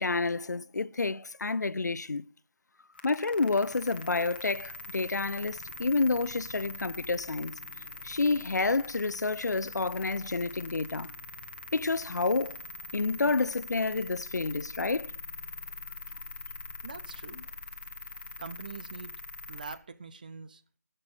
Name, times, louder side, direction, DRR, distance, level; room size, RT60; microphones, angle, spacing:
voice 1, 0.0-2.2 3.0-7.6 8.0-11.1 11.7-12.6 12.9-15.1, left 3 dB, 75° left, 0.6 m, -29 dB
sound 1, 3.0-19.8, left 3 dB, 35° left, 1.3 m, -43 dB
voice 2, 16.8-17.4 18.4-19.2 19.5-20.6, right 5 dB, 30° right, 0.6 m, -43 dB
14.0 x 6.8 x 7.4 m
figure-of-eight pair, 170°, 9 cm